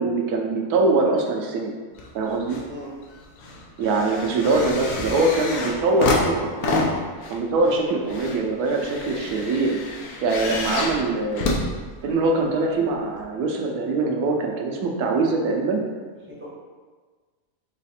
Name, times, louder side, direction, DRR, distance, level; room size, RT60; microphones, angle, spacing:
voice 1, 0.0-1.7 2.1-2.6 3.8-6.8 7.3-9.8 10.2-11.5 12.0-15.8, right 3 dB, 80° right, 1 dB, 1.1 m, -23 dB
sound 1, 1.9-2.7 3.0-12.4 13.2-13.3, left 2 dB, 75° left, 1.2 m, -28 dB
voice 2, 9.0-9.3 16.3-16.5, left 2 dB, 10° right, -6 dB, 0.6 m, -40 dB
4.1 x 2.4 x 4.1 m, 1.4 s
omnidirectional pair, 1.6 m